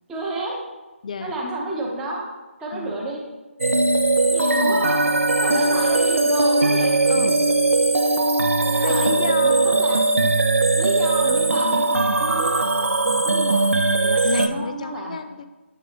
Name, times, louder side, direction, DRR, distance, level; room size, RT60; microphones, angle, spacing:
voice 1, 0.1-0.5 1.2-2.3 2.6-3.2 4.3-5.0 5.4-6.9 7.9-8.1 8.7-10.0 10.8-15.1, right 2 dB, 5° right, -3 dB, 0.7 m, -30 dB
sound 1, 3.6-14.5, right 2 dB, 80° right, 0.5 m, -19 dB
voice 2, 4.5-4.9 5.5-5.9 7.1-7.5 8.8-9.9 10.2-10.6 13.3-13.4 14.2-15.5, left 4 dB, 35° left, 10 dB, 0.4 m, -30 dB
8.1 x 3.8 x 3.1 m, 1.1 s
figure-of-eight pair, 155°, 7 cm